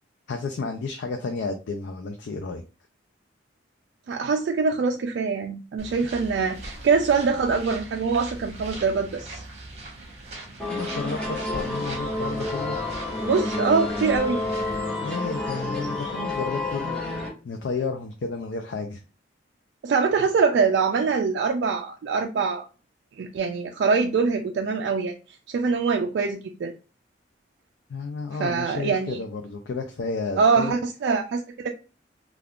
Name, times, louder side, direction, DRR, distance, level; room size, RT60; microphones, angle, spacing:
voice 1, 0.3-2.6 10.7-12.8 15.0-19.0 27.9-30.8, left 4 dB, 75° left, 0.4 m, -32 dB
voice 2, 4.1-9.4 13.2-14.4 19.8-22.7 23.2-25.1 25.5-26.7 28.4-29.2 30.4-31.7, right 5 dB, 65° right, 0.3 m, -24 dB
sound 1, 5.8-14.8, right 2 dB, 35° right, 0.9 m, -41 dB
sound 2, 10.6-17.3, left 2 dB, 5° left, 1.0 m, -29 dB
3.5 x 2.3 x 2.3 m
head